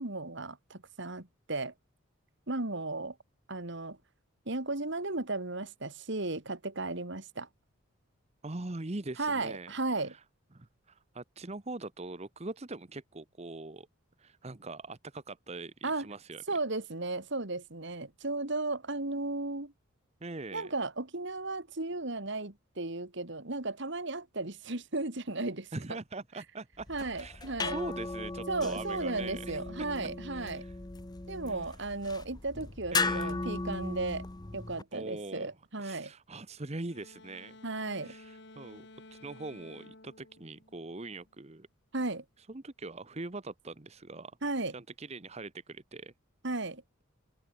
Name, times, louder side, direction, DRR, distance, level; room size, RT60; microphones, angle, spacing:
voice 1, 0.0-1.7 2.5-3.2 3.5-4.0 4.5-7.5 9.2-10.1 15.8-16.1 16.5-19.7 20.5-25.7 26.9-27.8 28.5-30.6 31.3-34.2 34.5-36.1 37.6-38.1 41.9-42.2 44.4-44.7 46.4-46.8, right 2 dB, 55° right, 2.1 m, -35 dB
voice 2, 8.4-10.2 10.5-13.9 14.2-16.4 20.2-20.7 25.7-26.9 27.1-29.9 30.3-30.8 31.5-31.6 32.9-33.4 34.9-35.5 35.8-37.6 38.0-41.7 42.5-44.4 44.7-46.1, right 2 dB, 30° right, 1.0 m, -42 dB
sound 1, 26.8-34.8, left 3 dB, 20° left, 0.7 m, -37 dB
sound 2, 36.9-41.3, left 2 dB, 55° left, 2.5 m, -54 dB
head